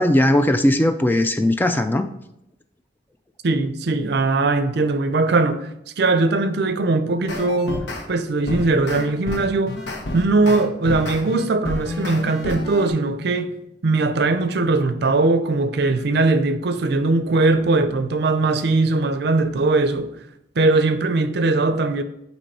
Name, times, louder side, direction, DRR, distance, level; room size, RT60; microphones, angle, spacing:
voice 1, 0.0-2.1, left 1 dB, 10° left, 0.3 m, -18 dB
voice 2, 3.4-5.7 6.0-7.8 8.1-9.8 10.1-13.5 13.8-20.1 20.6-22.0, right 3 dB, 65° right, 0.5 m, -20 dB
sound 1, 7.3-8.0 8.5-12.9, left 2 dB, 70° left, 1.0 m, -29 dB
8.5 x 3.1 x 4.2 m
head